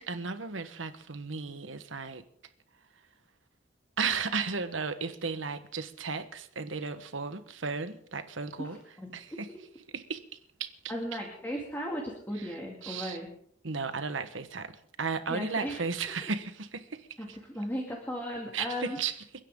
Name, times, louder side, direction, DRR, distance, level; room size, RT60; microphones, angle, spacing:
voice 1, 0.0-2.2 4.0-8.8 9.1-9.5 9.9-10.2 10.6-10.7 12.4-12.5 12.8-13.2 13.6-17.4 18.5-19.1, right 5 dB, 90° right, 1.2 m, -34 dB
voice 2, 8.6-9.1 10.9-13.3 15.3-15.8 17.2-19.0, equal, 10° left, 2.4 m, -36 dB
30.0 x 10.0 x 3.8 m
head